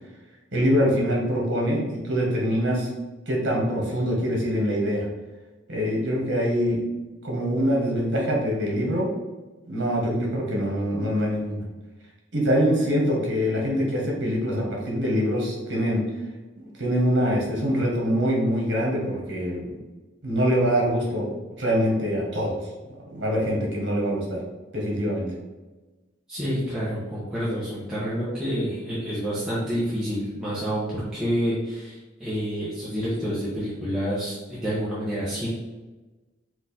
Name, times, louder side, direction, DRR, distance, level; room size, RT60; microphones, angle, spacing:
voice 1, 0.5-2.9 3.3-5.1 5.7-6.8 7.2-9.1 9.6-11.6 12.3-16.0 16.6-19.8 20.2-21.3 21.6-22.5 23.1-24.4 24.7-25.3, equal, 60° right, -2 dB, 1.4 m, -24 dB
voice 2, 26.3-35.5, equal, 5° right, -11 dB, 0.9 m, -28 dB
4.5 x 2.6 x 4.2 m, 1.2 s
head